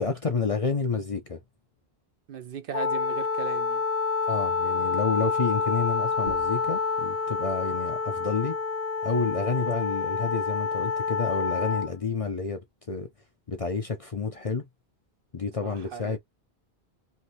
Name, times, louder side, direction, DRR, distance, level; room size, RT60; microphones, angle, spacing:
voice 1, 0.0-1.4 4.2-8.6 9.0-13.1 13.5-14.7 15.3-16.2, left 4 dB, 40° left, 0.6 m, -29 dB
voice 2, 2.3-3.8 15.6-16.2, right 8 dB, 65° right, 0.7 m, -38 dB
Wind instrument woodwind instrument, 2.7-11.9, left 4 dB, 70° left, 1.0 m, -28 dB
sound 1, 6.1-11.3, right 2 dB, 45° right, 1.1 m, -51 dB
3.3 x 2.6 x 2.7 m
omnidirectional pair, 1.1 m